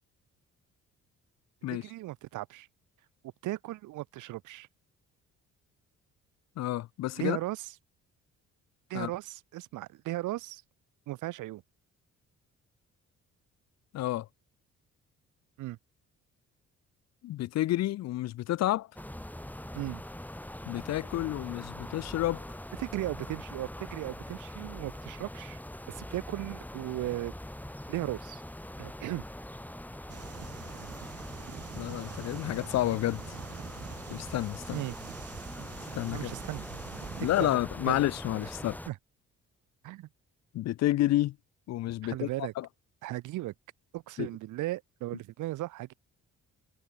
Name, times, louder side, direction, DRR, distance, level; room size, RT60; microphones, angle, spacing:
voice 1, 1.8-2.7 3.4-4.7 7.2-7.7 8.9-10.6 11.1-11.6 15.6-15.8 19.7-20.0 22.8-25.6 25.9-27.3 27.9-28.4 28.8-29.2 34.7-35.0 36.1-36.6 37.2-37.5 37.9-38.0 38.9-39.0 39.8-40.1 42.0-42.5 43.0-43.5 43.9-45.9, right 17 dB, 90° right, 1.3 m, -36 dB
voice 2, 6.6-7.4 8.9-9.1 13.9-14.3 17.2-18.9 20.6-22.4 31.8-33.4 34.1-34.8 35.9-36.3 37.2-38.8 40.5-41.4 41.7-42.7 44.2-44.3, left 14 dB, 60° left, 0.5 m, -30 dB
sound 1, 19.0-38.9, left 1 dB, 5° left, 5.4 m, -43 dB
sound 2, 30.1-37.6, right 9 dB, 50° right, 1.5 m, -45 dB
cardioid pair, 90°, 30 cm